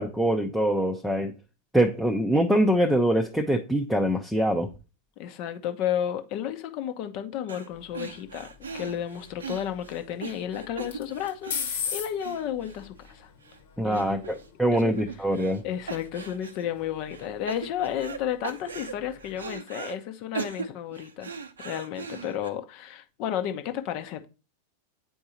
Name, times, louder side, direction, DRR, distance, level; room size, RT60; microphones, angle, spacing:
voice 1, 0.0-1.3 1.7-4.7 13.8-15.6, right 1 dB, ahead, 0.7 m, -24 dB
voice 2, 5.2-8.5 8.7-13.3 13.8-14.3 14.7-14.9 15.6-21.3 21.6-24.3, left 10 dB, 45° left, 0.9 m, -32 dB
sound 1, 7.5-7.7 7.9-13.1 13.4-13.6 13.9-14.5 14.7-15.6 15.9-16.7 17.1-18.2 18.4-20.0 20.3-22.5, right 5 dB, 70° right, 0.6 m, -39 dB
sound 2, 7.7-19.6, left 7 dB, 60° left, 1.3 m, -42 dB
8.7 x 4.6 x 2.9 m
figure-of-eight pair, 90°, 0 cm